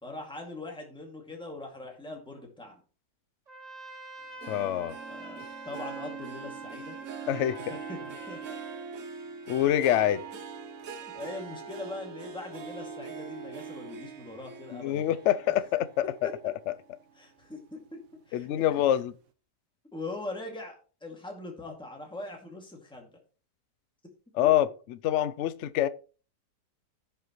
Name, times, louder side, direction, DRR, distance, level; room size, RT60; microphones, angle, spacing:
voice 1, 0.0-2.8 5.1-7.0 7.7-8.6 11.0-15.1 16.2-16.5 17.1-18.0 18.3-18.7 19.9-20.8 21.0-23.1, left 2 dB, 5° left, 2.1 m, -41 dB
Trumpet, 3.5-8.9, right 1 dB, 25° right, 1.2 m, -46 dB
Harp, 4.4-17.1 17.6-18.0 18.4-18.5, right 5 dB, 60° right, 1.3 m, -42 dB
voice 2, 4.5-5.0 7.3-7.6 9.5-10.2 14.7-16.0 16.4-16.5 18.3-19.1 24.3-25.9, left 12 dB, 75° left, 0.6 m, -26 dB
16.0 x 5.6 x 3.1 m
omnidirectional pair, 1.8 m